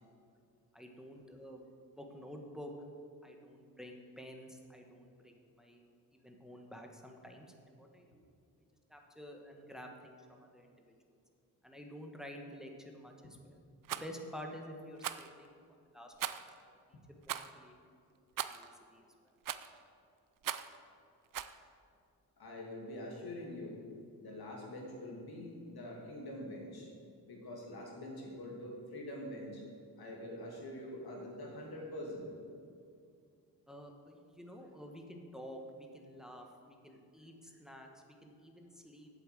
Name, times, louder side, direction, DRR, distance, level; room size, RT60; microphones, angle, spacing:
voice 1, 0.7-1.7 2.0-2.7 3.2-5.8 6.2-8.3 8.9-10.7 11.6-13.6 13.9-15.6 15.9-16.4 16.7-16.8 17.3-17.7 18.5-19.0 33.7-37.9 38.2-39.1, equal, ahead, 2 dB, 1.4 m, -50 dB
Rattle, 13.8-14.1 15.0-15.3 16.2-16.5 17.2-17.5 18.4-18.7 19.4-19.8 20.4-20.8 21.3-21.6, right 10 dB, 55° right, 0.5 m, -39 dB
voice 2, 22.4-23.8 24.2-26.9 27.3-29.6 30.0-32.3, left 1 dB, 70° left, -1 dB, 2.7 m, -45 dB
8.2 x 7.9 x 7.6 m, 2.3 s
cardioid pair, 75°, 38 cm